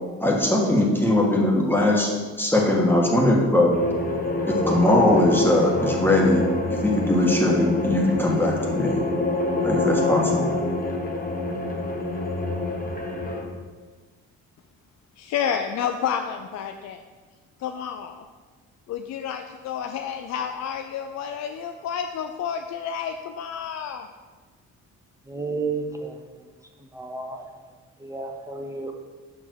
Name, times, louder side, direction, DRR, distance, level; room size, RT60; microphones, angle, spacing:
voice 1, 0.2-2.1 2.4-3.7 4.4-6.4 6.7-9.0 9.6-10.5, left 1 dB, 5° left, -2 dB, 1.5 m, -20 dB
sound 1, 3.7-13.4, left 2 dB, 30° left, 1.3 m, -26 dB
voice 2, 15.2-17.0 17.6-18.2 18.9-24.1, left 8 dB, 65° left, 6 dB, 0.5 m, -30 dB
voice 3, 25.3-26.2 26.8-27.5 28.0-28.9, right 4 dB, 10° right, 2 dB, 0.8 m, -32 dB
5.6 x 4.7 x 6.3 m, 1.4 s
cardioid pair, 90°, 30 cm